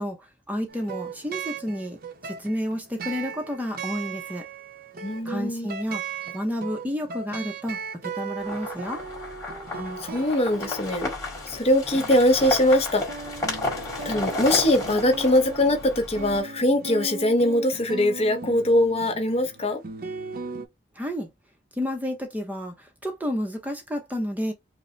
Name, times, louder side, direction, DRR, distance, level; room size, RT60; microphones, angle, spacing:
voice 1, 0.0-4.5 5.3-6.0 6.3-9.0 21.0-21.3 21.7-24.5, equal, 10° right, 0.6 m, -31 dB
sound 1, 0.7-20.7, right 5 dB, 50° right, 0.6 m, -38 dB
voice 2, 5.0-5.7 9.7-11.1 11.4-13.0 14.0-19.8, left 1 dB, 35° left, 0.7 m, -22 dB
sound 2, 8.4-16.4, left 2 dB, 20° left, 1.7 m, -33 dB
5.1 x 2.0 x 3.1 m
head